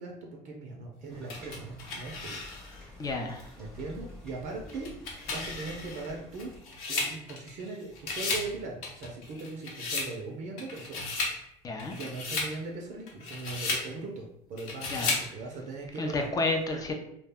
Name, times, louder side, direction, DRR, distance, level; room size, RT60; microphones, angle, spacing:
voice 1, 0.0-2.4 2.8-3.1 3.6-4.9 5.3-6.6 6.9-11.0 11.9-16.3, right 3 dB, 50° right, 0 dB, 0.5 m, -40 dB
sound 1, 1.1-6.6, left 1 dB, 5° left, 0.8 m, -49 dB
sound 2, 1.3-2.8 3.4-3.5 4.7-7.7 8.0-8.5 8.8-10.1 10.6-11.4 11.8-12.5 13.1-13.9 14.6-15.3, left 3 dB, 70° left, 0.8 m, -34 dB
voice 2, 3.0-3.5 11.6-11.9 14.9-15.2 16.0-16.9, left 2 dB, 25° left, 4 dB, 0.5 m, -30 dB
2.3 x 2.1 x 3.4 m, 0.75 s
supercardioid pair, 115°, 15 cm